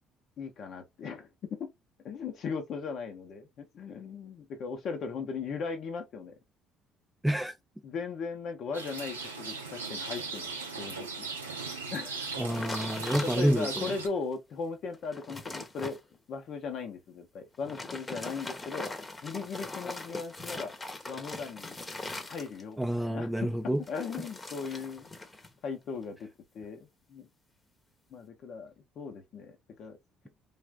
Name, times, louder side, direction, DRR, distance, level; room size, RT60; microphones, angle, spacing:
voice 1, 0.4-1.7 2.0-6.4 7.8-11.3 11.9-12.3 12.8-16.0 16.3-18.9 19.2-20.7 21.1-21.8 22.3-23.3 23.6-25.1 25.6-26.3 26.5-27.3 28.1-30.0, left 5 dB, 55° left, 0.6 m, -38 dB
voice 2, 7.2-7.5 12.4-13.9 22.8-23.8, right 1 dB, 5° right, 0.4 m, -28 dB
Rain, 8.7-14.1, right 4 dB, 90° right, 0.5 m, -38 dB
sound 1, 12.5-13.8 14.3-14.4 14.9-16.0 17.5-22.8 23.8-25.5 25.8-26.2, left 2 dB, 25° left, 0.8 m, -41 dB
3.4 x 2.4 x 2.2 m
figure-of-eight pair, 50°, 0 cm